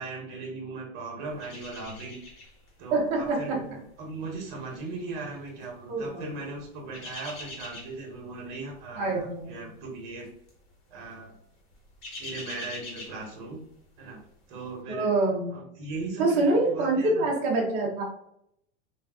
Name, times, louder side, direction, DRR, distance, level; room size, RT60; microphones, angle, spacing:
voice 1, 0.0-2.2 2.8-10.3 10.9-11.4 12.2-13.6 14.0-14.2 14.5-15.2 15.5-17.3, right 3 dB, 50° right, 1 dB, 0.9 m, -38 dB
sound 1, 1.4-2.7 3.0-3.3 4.0-5.6 6.6-8.1 8.5-8.8 9.1-9.2 10.2-10.6 10.9-11.1 11.5-13.8 14.2-14.3, left 2 dB, 60° left, 1.2 m, -44 dB
voice 2, 2.9-3.6 5.9-6.3 9.0-9.7 14.9-15.5 16.2-18.0, right 2 dB, 20° right, -3 dB, 0.4 m, -25 dB
2.3 x 2.3 x 3.5 m, 0.73 s
supercardioid pair, 175°, 34 cm